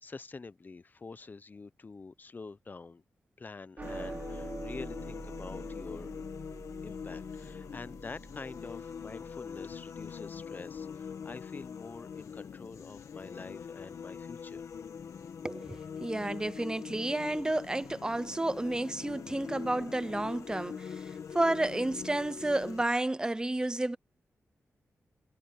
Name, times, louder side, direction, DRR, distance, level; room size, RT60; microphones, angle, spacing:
voice 1, 0.0-3.0 3.4-6.1 6.8-14.7, left 4 dB, 35° left, 0.8 m, -46 dB
sound 1, 3.8-22.8, left 7 dB, 80° left, 1.6 m, -43 dB
sound 2, 3.8-10.3, right 3 dB, 35° right, 2.9 m, -46 dB
sound 3, 6.9-12.3, left 7 dB, 60° left, 3.7 m, -65 dB
voice 2, 15.4-24.0, right 2 dB, 15° right, 0.6 m, -31 dB
cardioid pair, 75°, 5 cm